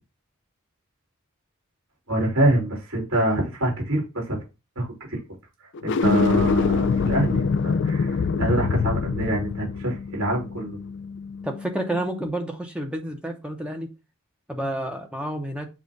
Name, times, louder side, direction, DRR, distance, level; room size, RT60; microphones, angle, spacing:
voice 1, 2.1-4.4 4.8-5.2 5.8-10.8, right 1 dB, 65° right, 3.1 m, -25 dB
sound 1, 5.7-11.0, left 5 dB, 55° left, 0.3 m, -25 dB
Bass guitar, 6.0-12.3, left 4 dB, 70° left, 0.9 m, -29 dB
voice 2, 11.4-13.9 14.5-15.7, right 1 dB, 5° right, 0.9 m, -30 dB
7.3 x 2.5 x 5.2 m
head